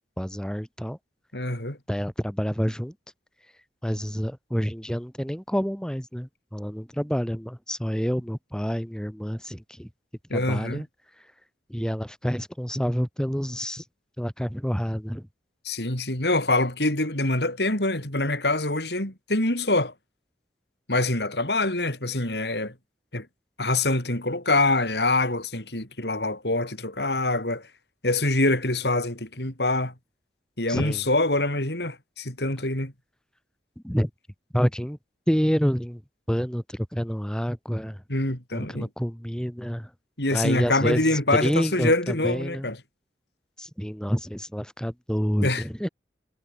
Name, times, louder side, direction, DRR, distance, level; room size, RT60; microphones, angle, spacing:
voice 1, 0.2-1.0 1.9-2.9 3.8-9.9 10.3-10.9 11.7-13.8 14.2-15.3 30.7-31.0 33.8-34.1 34.5-35.0 35.3-36.0 36.3-38.0 38.5-39.9 40.3-42.7 43.6-45.9, equal, 5° left, 3.4 m, -28 dB
voice 2, 1.3-1.8 10.3-10.8 15.6-19.9 20.9-22.7 23.1-23.3 23.6-27.7 28.0-29.9 30.6-32.9 38.1-38.9 40.2-42.8 45.4-45.6, left 2 dB, 70° left, 6.4 m, -25 dB
head